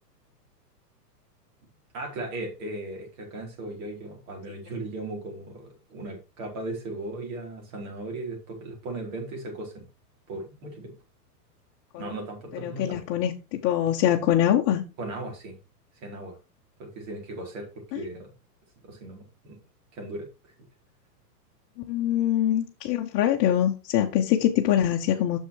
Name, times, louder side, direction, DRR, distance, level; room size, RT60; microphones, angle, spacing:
voice 1, 1.9-9.8 10.3-10.9 12.0-13.0 15.0-15.6 16.0-16.4 16.8-17.7 17.9-18.3 18.8-19.6 19.9-20.3, right 2 dB, 50° right, 0 dB, 4.6 m, -37 dB
voice 2, 12.6-14.8 17.9-18.0 21.9-25.4, left 11 dB, 30° left, 0 dB, 1.0 m, -24 dB
6.6 x 6.3 x 4.7 m, 0.29 s
hypercardioid pair, 140°, 48 cm